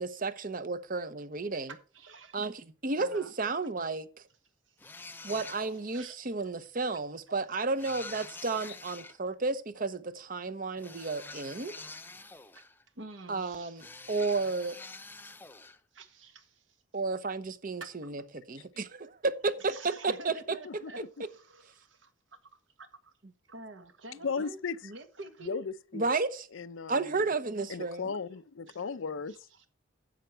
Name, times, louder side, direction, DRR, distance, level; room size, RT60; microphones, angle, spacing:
voice 1, 0.0-1.7 2.3-4.1 5.2-11.7 13.3-14.8 16.9-20.6 25.9-26.5 26.9-28.1, right 3 dB, 45° right, 0.8 m, -32 dB
voice 2, 1.7-2.4 3.0-3.3 4.7-4.9 5.2-5.4 5.9-6.3 8.8-8.9 11.8-12.0 12.5-12.6 12.9-13.9 15.9-16.8 17.8-18.1 19.6-22.4 22.8-23.1 23.5-25.6 27.9-28.0 28.7-28.8 29.3-29.7, right 3 dB, 70° right, 1.5 m, -48 dB
sound 1, 4.8-6.0 7.8-9.2 10.8-12.8 13.8-15.8, left 3 dB, 10° left, 0.4 m, -46 dB
voice 3, 24.2-24.8 25.5-26.1 26.5-27.2 27.7-29.4, left 5 dB, 80° left, 0.5 m, -36 dB
10.5 x 7.8 x 4.5 m
head